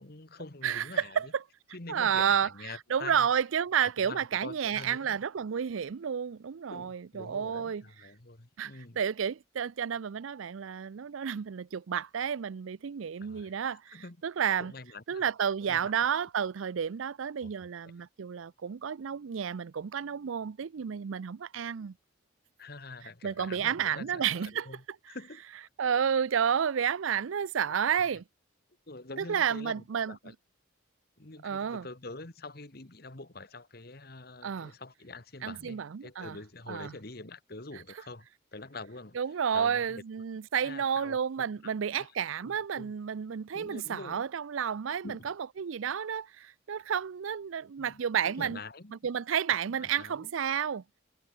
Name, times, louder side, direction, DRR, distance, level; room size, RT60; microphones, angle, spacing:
voice 1, 0.0-1.3 1.7-3.3 3.8-5.2 6.7-9.0 13.2-13.5 13.9-14.2 14.6-15.2 15.6-15.9 17.4-17.5 17.8-17.9 22.6-25.4 28.0-28.2 28.9-30.3 31.2-39.2 39.5-40.0 40.6-42.1 42.4-42.9 43.5-44.2 45.0-45.3 47.8-49.0 49.8-50.3, left 3 dB, 50° left, 1.7 m, -46 dB
voice 2, 0.6-1.4 1.9-2.5 2.9-7.8 8.6-14.7 15.1-21.9 23.2-24.7 25.8-28.2 29.2-30.2 31.4-31.9 34.4-34.7 35.4-36.4 36.7-37.0 39.1-48.6 49.0-50.8, right 8 dB, 80° right, 0.5 m, -31 dB
head